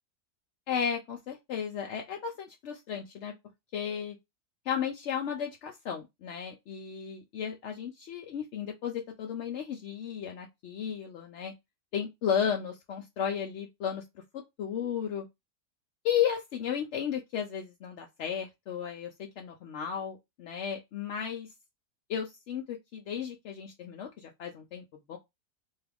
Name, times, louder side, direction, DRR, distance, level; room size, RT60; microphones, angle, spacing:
voice 1, 0.7-3.3 3.7-4.2 4.7-11.5 11.9-14.0 14.3-15.3 16.0-21.5 22.1-25.2, left 8 dB, 80° left, 0.6 m, -34 dB
2.8 x 2.3 x 3.3 m
omnidirectional pair, 1.8 m